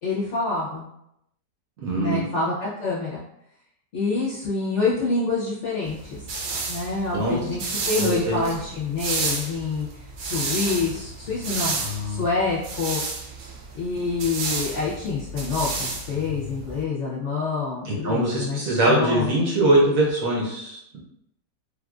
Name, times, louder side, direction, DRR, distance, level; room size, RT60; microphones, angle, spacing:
voice 1, 0.0-0.9 2.0-3.2 3.9-6.2 6.7-11.8 12.0-13.0 13.7-18.6 18.9-19.3, left 3 dB, 55° left, -7 dB, 0.8 m, -27 dB
voice 2, 1.8-2.3 7.1-7.4 8.0-8.4 11.8-12.2 17.8-21.0, right 1 dB, 65° right, -4 dB, 1.0 m, -22 dB
sound 1, 5.9-16.8, right 3 dB, 85° right, 1.4 m, -31 dB
3.6 x 2.5 x 2.3 m, 0.79 s
omnidirectional pair, 1.9 m